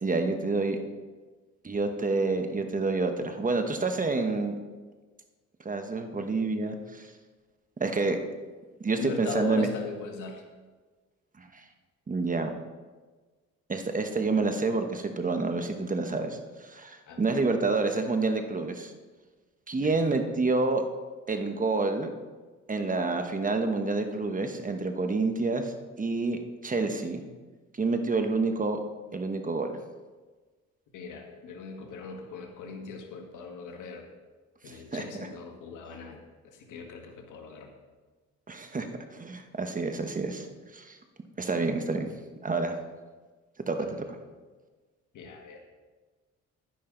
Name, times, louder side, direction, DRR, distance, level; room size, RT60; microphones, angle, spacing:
voice 1, 0.0-0.8 1.6-4.6 5.6-7.1 7.8-8.2 8.8-9.7 11.4-11.6 12.1-12.5 13.7-18.9 19.7-20.9 21.3-22.1 22.7-27.2 27.8-28.8 29.1-29.7 34.7-35.3 38.5-40.5 40.7-41.0 41.4-42.1 42.4-42.8 43.7-44.0, right 3 dB, 25° right, 6 dB, 1.1 m, -28 dB
voice 2, 9.0-10.4 17.1-17.3 19.8-20.0 30.9-34.0 34.6-37.7 43.8-44.0 45.1-45.6, left 4 dB, 85° left, 3 dB, 1.8 m, -39 dB
11.0 x 10.5 x 3.9 m, 1.3 s
cardioid pair, 90°, 30 cm